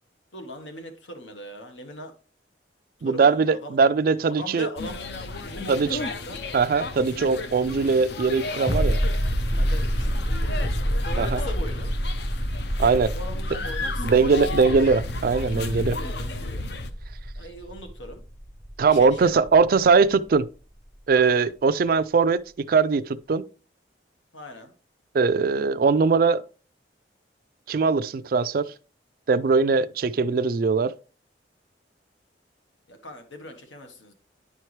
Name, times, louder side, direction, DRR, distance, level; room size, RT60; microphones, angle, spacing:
voice 1, 0.3-2.1 3.0-3.8 4.3-5.0 5.4-6.4 9.5-10.7 11.0-11.9 13.1-14.9 15.7-16.6 17.4-18.2 18.9-19.4 21.1-21.5 24.3-24.7 32.9-34.1, left 1 dB, 85° left, 1.3 m, -39 dB
voice 2, 3.0-4.7 5.7-6.0 6.5-9.0 11.2-11.4 12.8-13.1 14.0-16.0 18.8-20.5 21.1-22.4 22.7-23.4 25.1-26.4 27.7-28.7 29.3-30.9, right 4 dB, 50° right, 0.3 m, -21 dB
sound 1, 4.8-16.9, left 3 dB, 60° left, 0.6 m, -33 dB
sound 2, 8.7-20.0 20.3-20.4, equal, 20° left, 0.7 m, -28 dB
9.9 x 4.5 x 3.2 m
head